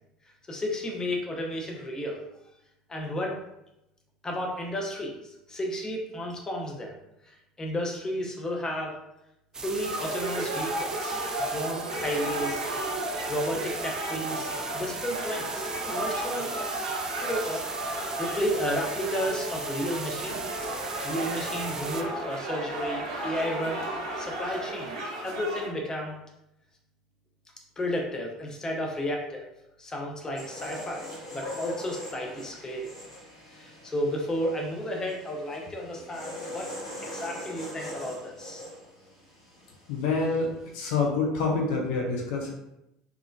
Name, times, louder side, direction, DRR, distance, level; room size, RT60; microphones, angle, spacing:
voice 1, 0.5-2.2 2.9-3.4 4.2-6.9 7.6-9.0 9.6-11.1 11.5-12.6 13.3-16.5 17.2-17.8 18.2-20.7 21.0-23.8 24.2-24.9 25.2-26.2 27.8-29.4 29.8-32.9 33.5-36.7 37.0-38.6, equal, 20° left, 0 dB, 0.7 m, -32 dB
sound 1, 9.5-22.0, right 3 dB, 20° right, 0.4 m, -38 dB
sound 2, 9.8-25.7, right 1 dB, 65° right, 0.7 m, -34 dB
sound 3, 30.4-40.4 40.7-41.0, left 1 dB, 85° left, 1.0 m, -41 dB
voice 2, 39.9-42.5, left 4 dB, 60° left, 0 dB, 0.6 m, -27 dB
3.4 x 3.0 x 2.3 m, 0.86 s
figure-of-eight pair, 65°, 3 cm